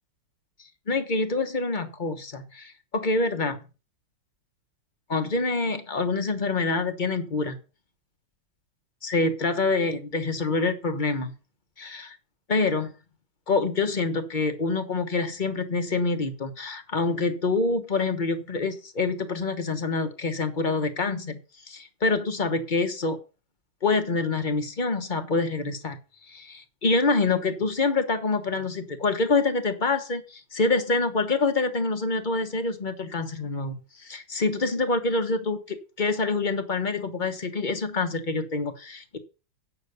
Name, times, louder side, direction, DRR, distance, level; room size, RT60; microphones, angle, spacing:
voice 1, 0.9-3.6 5.1-7.6 9.0-11.3 11.8-12.2 12.5-12.9 13.5-21.4 21.7-23.2 23.8-26.0 26.3-39.2, left 3 dB, 30° left, 7 dB, 0.9 m, -26 dB
8.7 x 6.5 x 6.8 m, 0.33 s
omnidirectional pair, 2.2 m